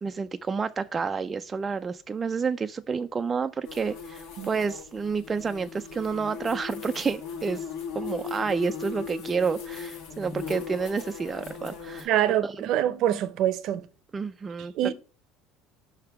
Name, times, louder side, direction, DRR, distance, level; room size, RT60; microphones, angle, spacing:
voice 1, 0.0-7.6 7.9-12.7 14.1-14.7, right 5 dB, 25° right, 0.3 m, -30 dB
sound 1, 3.6-12.0, left 6 dB, 75° left, 1.8 m, -38 dB
voice 2, 12.1-13.9 14.8-14.9, right 11 dB, 60° right, 0.6 m, -25 dB
5.6 x 3.5 x 5.7 m
cardioid pair, 125°, 0 cm